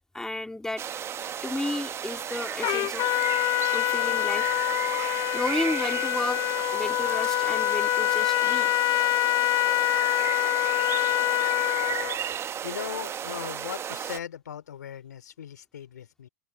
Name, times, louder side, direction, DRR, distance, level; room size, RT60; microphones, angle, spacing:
voice 1, 0.1-0.8 1.4-3.2 3.7-4.6 5.3-8.7, left 2 dB, 5° left, 3.0 m, -33 dB
sound 1, 0.8-14.2, right 9 dB, 30° right, 1.1 m, -34 dB
Trumpet, 2.6-12.2, left 18 dB, 45° left, 0.7 m, -25 dB
voice 2, 12.6-16.3, left 9 dB, 85° left, 3.2 m, -38 dB
hypercardioid pair, 105°, 9 cm